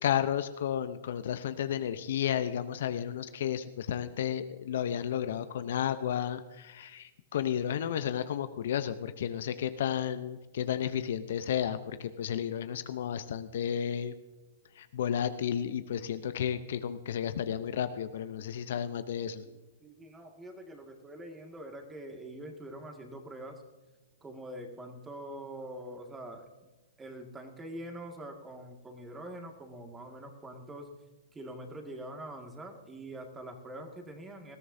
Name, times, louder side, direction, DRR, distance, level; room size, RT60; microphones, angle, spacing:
voice 1, 0.0-14.1 14.8-19.4, left 9 dB, 65° left, 11 dB, 0.7 m, -32 dB
voice 2, 19.4-23.6 24.2-26.7 27.0-30.9 31.3-34.6, right 1 dB, 15° right, 3 dB, 1.9 m, -44 dB
20.0 x 14.0 x 2.7 m, 1.2 s
hypercardioid pair, 125°, 0 cm